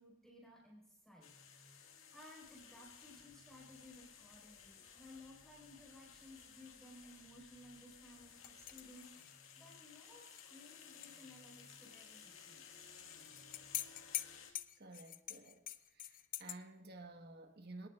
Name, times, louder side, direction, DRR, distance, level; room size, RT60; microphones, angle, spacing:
voice 1, 0.0-12.7, left 1 dB, ahead, 5.0 m, -59 dB
sound 1, 1.2-14.5, left 7 dB, 75° left, 1.8 m, -58 dB
sound 2, 1.9-9.1, right 1 dB, 30° right, 4.5 m, -74 dB
sound 3, 8.4-11.2 11.5-11.6 13.0-16.6, left 12 dB, 40° left, 0.5 m, -46 dB
voice 2, 14.8-15.6 15.9-17.9, right 2 dB, 50° right, 1.4 m, -53 dB
27.5 x 18.5 x 2.5 m
head